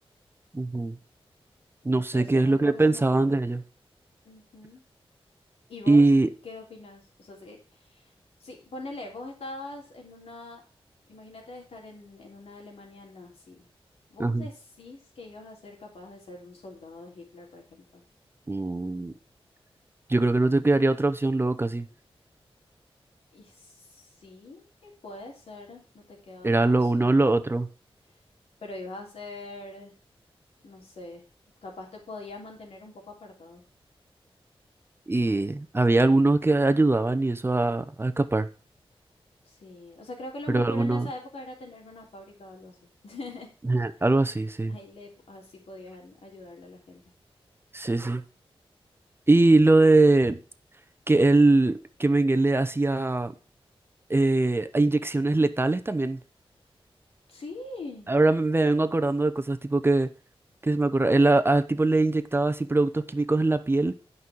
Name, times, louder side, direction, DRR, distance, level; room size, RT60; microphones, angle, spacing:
voice 1, 0.5-1.0 1.8-3.6 5.9-6.3 14.2-14.5 18.5-19.1 20.1-21.9 26.4-27.7 35.1-38.5 40.5-41.1 43.7-44.7 47.7-48.2 49.3-50.4 51.1-53.3 54.1-56.2 58.1-60.1 60.6-63.9, right 2 dB, 25° right, 0.8 m, -22 dB
voice 2, 1.9-3.4 4.2-4.8 5.7-6.1 6.4-8.1 8.4-10.6 11.1-13.7 14.1-18.0 23.3-27.3 28.6-29.9 30.6-31.2 31.6-33.6 39.4-43.5 44.7-47.0 57.3-58.1, left 2 dB, 90° left, 3.3 m, -43 dB
9.4 x 5.6 x 6.2 m
wide cardioid pair, 90°, 10 cm